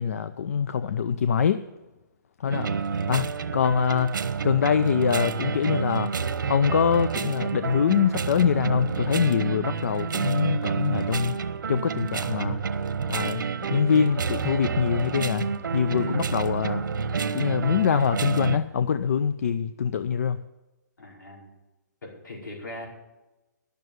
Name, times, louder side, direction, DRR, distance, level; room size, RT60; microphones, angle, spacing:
voice 1, 0.0-1.6 2.4-2.7 3.1-4.1 4.4-6.1 6.5-11.4 11.7-12.6 13.1-16.8 17.3-20.4, left 7 dB, 50° left, 13 dB, 0.4 m, -24 dB
voice 2, 2.4-2.9 15.9-16.2 21.0-21.5 22.0-22.9, left 2 dB, 70° left, -1 dB, 4.9 m, -39 dB
sound 1, 2.5-18.6, right 5 dB, 90° right, 0.9 m, -29 dB
11.0 x 6.7 x 9.3 m, 1.0 s
hypercardioid pair, 175°, 10 cm